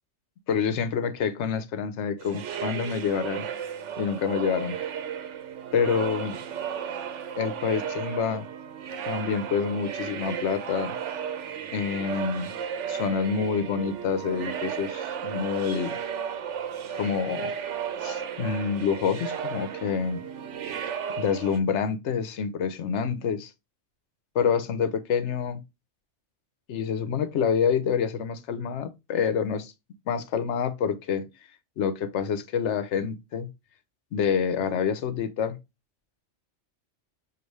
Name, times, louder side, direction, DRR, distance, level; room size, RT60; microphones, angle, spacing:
voice 1, 0.5-3.5 4.0-4.8 5.7-6.4 7.4-8.5 9.1-10.9 11.7-12.5 12.9-16.0 16.9-17.5 18.0-20.2 21.2-23.5 24.3-25.6 26.7-29.7 30.1-31.3 31.8-33.5 34.1-35.6, left 6 dB, 75° left, 0.9 m, -27 dB
sound 1, 2.2-21.6, right 8 dB, 80° right, 1.0 m, -34 dB
6.7 x 2.6 x 3.1 m
omnidirectional pair, 1.2 m